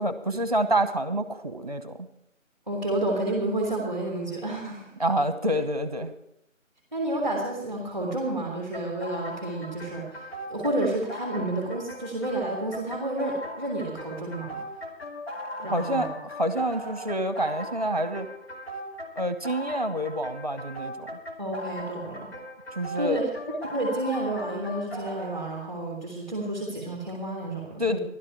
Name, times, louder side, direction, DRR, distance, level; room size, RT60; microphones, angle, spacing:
voice 1, 0.0-2.1 5.0-6.1 15.7-18.3 19.2-21.2 22.8-23.2 27.8-28.0, right 1 dB, 30° right, 11 dB, 1.1 m, -27 dB
voice 2, 2.7-4.9 6.9-14.6 15.6-16.1 21.4-22.3 22.9-23.2 23.6-28.0, right 1 dB, 5° left, -2 dB, 2.7 m, -30 dB
sound 1, 8.7-25.4, equal, 50° left, 2.5 m, -39 dB
15.0 x 12.5 x 4.6 m, 0.76 s
figure-of-eight pair, 175°, 39 cm